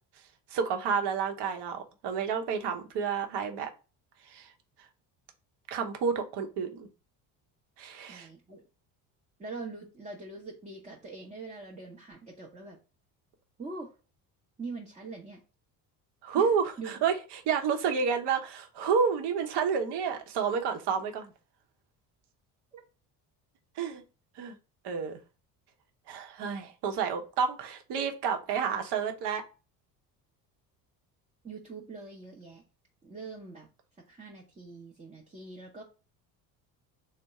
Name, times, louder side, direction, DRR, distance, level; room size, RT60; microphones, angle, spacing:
voice 1, 0.5-3.7 4.3-4.5 5.7-6.9 7.8-8.3 16.2-21.3 23.8-24.0 24.4-24.6 24.8-25.2 26.1-29.4, right 6 dB, 55° right, 0.9 m, -30 dB
voice 2, 8.0-8.6 9.4-12.8 13.6-13.9 14.6-15.4 16.4-16.5 16.8-17.0 22.7-22.8 31.4-32.6 33.0-33.7 34.1-35.8, right 3 dB, 15° right, 0.7 m, -43 dB
3.5 x 2.1 x 4.1 m
hypercardioid pair, 60°, 49 cm